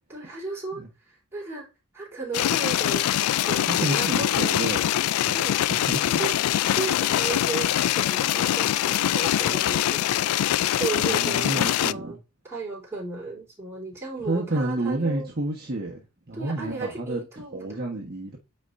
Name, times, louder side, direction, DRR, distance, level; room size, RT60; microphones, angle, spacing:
voice 1, 0.1-1.7 1.9-3.1 3.5-4.5 5.3-5.6 6.1-7.7 8.0-10.0 10.8-12.2 12.4-15.3 16.3-18.0, right 3 dB, 10° right, 3.5 m, -35 dB
sound 1, 2.3-11.9, left 12 dB, 80° left, 0.3 m, -23 dB
voice 2, 3.7-6.2 11.0-12.2 14.3-17.2 17.5-18.4, right 2 dB, 45° right, 1.2 m, -30 dB
9.1 x 4.4 x 2.6 m
head